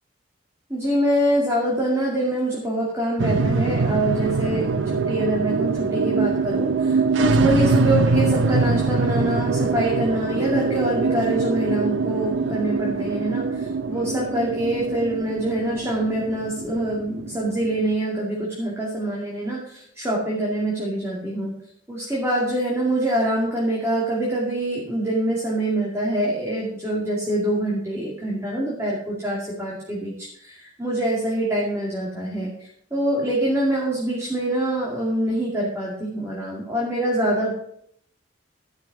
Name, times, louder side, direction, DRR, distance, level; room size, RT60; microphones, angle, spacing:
voice 1, 0.7-21.5 21.9-37.5, right 1 dB, 15° right, -5 dB, 2.4 m, -25 dB
sound 1, 3.2-17.8, right 4 dB, 90° right, 0.7 m, -23 dB
12.5 x 6.1 x 6.0 m, 0.67 s
head